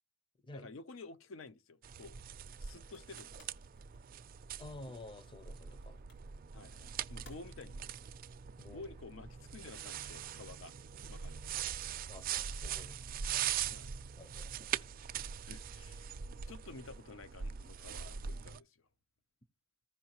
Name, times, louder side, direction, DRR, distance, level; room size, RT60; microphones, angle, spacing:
voice 1, 0.5-2.2 2.6-3.6 6.5-7.9 8.7-10.7 11.1-11.5 13.7-13.9 15.4-18.8, left 3 dB, 90° left, 0.7 m, -52 dB
sound 1, 1.8-18.6, right 9 dB, 45° right, 0.4 m, -42 dB
sound 2, 2.9-9.1, left 2 dB, 60° left, 3.7 m, -65 dB
voice 2, 4.6-6.0 6.6-6.7 8.6-8.9 12.1-12.3 12.5-13.0 14.2-14.7 15.1-15.3, left 2 dB, 25° left, 0.6 m, -51 dB
15.0 x 5.6 x 2.9 m
head